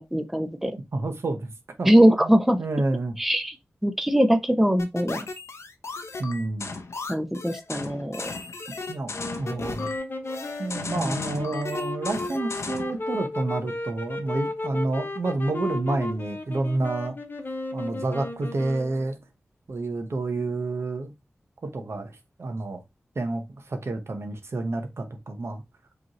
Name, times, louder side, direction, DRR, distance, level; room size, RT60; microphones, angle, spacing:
voice 1, 0.0-0.8 1.8-2.6 3.2-3.5 3.8-5.2 7.1-8.3 10.9-11.3, equal, 5° right, 0.6 m, -21 dB
voice 2, 0.9-1.5 1.8-1.9 2.2-2.3 2.6-3.2 6.2-6.8 8.9-9.1 9.4-9.9 10.6-17.2 17.7-19.2 19.7-21.1 21.6-22.8 23.1-25.6, right 2 dB, 65° right, 0.9 m, -29 dB
sound 1, 4.8-13.0, left 3 dB, 75° left, 0.7 m, -36 dB
sound 2, 9.1-19.1, left 2 dB, 45° left, 0.9 m, -34 dB
5.1 x 3.1 x 2.9 m
wide cardioid pair, 80°, 5 cm